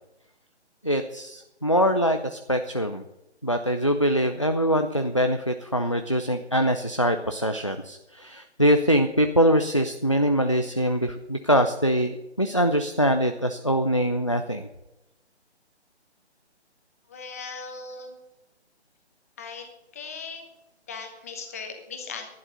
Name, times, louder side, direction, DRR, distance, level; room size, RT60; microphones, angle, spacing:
voice 1, 0.8-3.0 3.4-14.7, equal, 30° left, 6 dB, 0.4 m, -23 dB
voice 2, 17.1-18.1 19.4-19.7 19.9-20.5 20.9-22.3, left 5 dB, 15° left, 5 dB, 1.0 m, -38 dB
11.0 x 11.0 x 6.5 m, 0.95 s
figure-of-eight pair, 150°, 34 cm